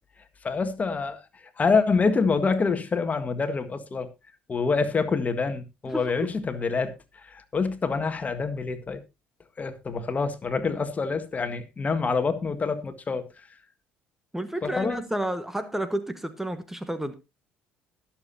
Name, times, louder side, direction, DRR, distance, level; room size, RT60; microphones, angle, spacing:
voice 1, 0.4-1.2 1.6-4.1 4.5-9.0 9.6-13.5 14.6-15.0, left 4 dB, 30° left, 1.6 m, -26 dB
voice 2, 14.3-17.1, right 1 dB, 5° right, 1.2 m, -30 dB
21.0 x 7.2 x 2.7 m
hypercardioid pair, 65°, 5 cm